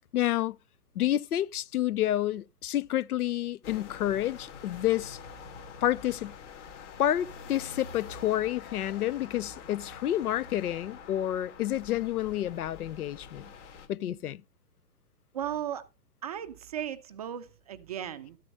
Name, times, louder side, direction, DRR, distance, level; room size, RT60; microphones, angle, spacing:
voice 1, 0.1-0.6 1.0-5.2 5.8-6.3 7.0-13.5 13.9-14.4, left 12 dB, 65° left, 0.6 m, -29 dB
sound 1, 3.6-13.9, left 5 dB, 45° left, 2.6 m, -46 dB
voice 2, 15.3-15.9 16.2-18.4, right 10 dB, 25° right, 0.5 m, -36 dB
13.0 x 6.7 x 5.3 m
hypercardioid pair, 130°, 49 cm